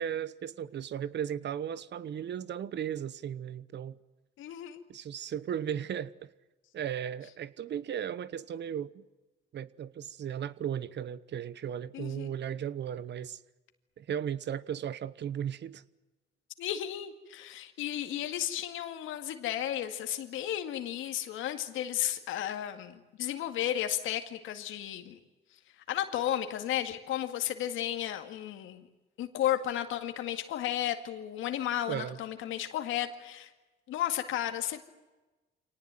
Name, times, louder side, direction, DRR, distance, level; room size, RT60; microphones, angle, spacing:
voice 1, 0.0-4.0 4.9-6.3 6.7-9.0 9.5-13.4 14.0-15.8 31.9-32.2, right 9 dB, 60° right, 1.1 m, -36 dB
voice 2, 4.4-4.8 11.9-12.3 16.6-25.2 25.9-28.9 29.2-33.5 33.9-34.8, left 11 dB, 90° left, 2.1 m, -33 dB
25.5 x 18.5 x 9.1 m
cardioid pair, 90°, 20 cm